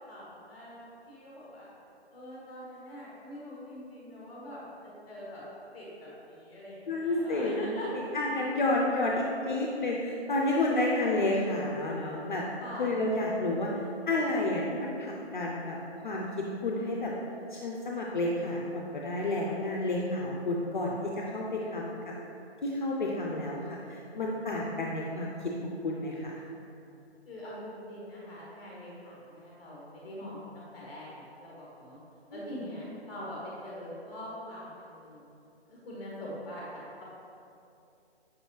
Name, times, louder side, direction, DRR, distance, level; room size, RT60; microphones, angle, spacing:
voice 1, 0.1-1.7 2.1-5.4 5.7-7.9 10.7-11.2 12.6-12.9 27.3-32.0 32.3-35.3 35.7-37.0, equal, 10° left, -6 dB, 0.7 m, -43 dB
voice 2, 6.9-12.4 12.8-13.7 14.1-15.8 16.0-17.1 17.5-22.1 22.6-25.3 25.6-26.4 32.3-32.6, left 2 dB, 45° left, -2 dB, 0.4 m, -30 dB
5.3 x 2.7 x 3.1 m, 2.7 s
figure-of-eight pair, 145°, 33 cm